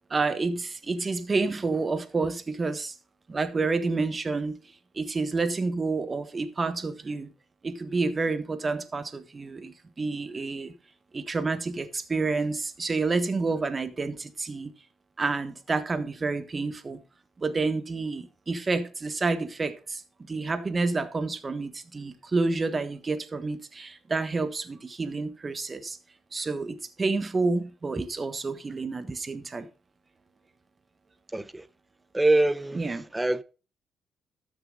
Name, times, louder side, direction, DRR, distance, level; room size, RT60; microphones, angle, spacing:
voice 1, 0.1-2.9 3.3-4.6 4.9-7.3 7.6-10.7 11.1-14.7 15.2-17.0 17.4-26.0 26.3-29.7 32.7-33.1, right 3 dB, 30° right, 1.3 m, -29 dB
voice 2, 31.3-31.7 32.1-32.8 33.1-33.4, right 2 dB, 10° right, 0.7 m, -24 dB
12.5 x 6.9 x 3.7 m
cardioid pair, 90°, 0 cm